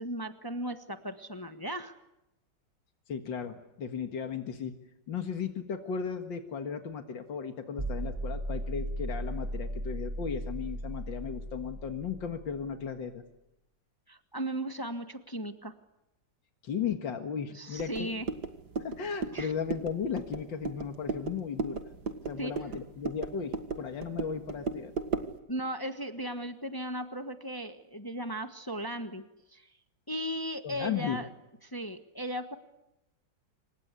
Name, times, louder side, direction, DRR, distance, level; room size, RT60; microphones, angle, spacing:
voice 1, 0.0-2.0 14.1-15.7 17.5-18.3 19.3-19.5 22.4-22.7 25.5-29.7 30.1-31.3 31.6-32.6, right 1 dB, 15° left, 7 dB, 1.4 m, -36 dB
voice 2, 3.1-4.7 5.1-13.2 16.6-18.2 18.8-21.8 22.3-24.9 30.6-31.2, left 7 dB, 90° left, 6 dB, 2.4 m, -35 dB
sound 1, 7.8-12.8, right 1 dB, 20° right, 1.8 m, -36 dB
sound 2, 17.8-25.4, right 5 dB, 60° right, 2.4 m, -36 dB
28.0 x 25.5 x 8.4 m, 0.89 s
omnidirectional pair, 2.0 m